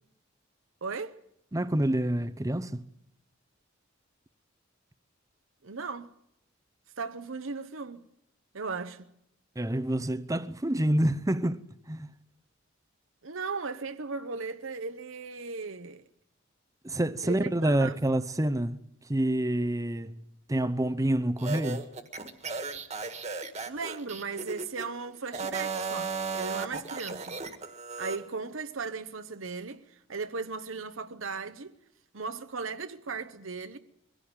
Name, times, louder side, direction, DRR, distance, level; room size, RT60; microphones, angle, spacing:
voice 1, 0.8-1.2 5.6-6.1 7.0-8.0 8.5-9.0 13.2-16.0 17.2-18.0 23.7-27.4 28.0-31.8 32.1-33.8, right 4 dB, 70° right, 1.0 m, -37 dB
voice 2, 1.5-2.8 9.6-11.6 11.9-12.1 16.8-18.8 19.1-20.2 20.5-21.9, right 1 dB, 15° right, 0.7 m, -27 dB
sound 1, 21.4-24.9 25.3-28.2, right 4 dB, 35° right, 1.7 m, -35 dB
22.5 x 16.5 x 8.8 m
head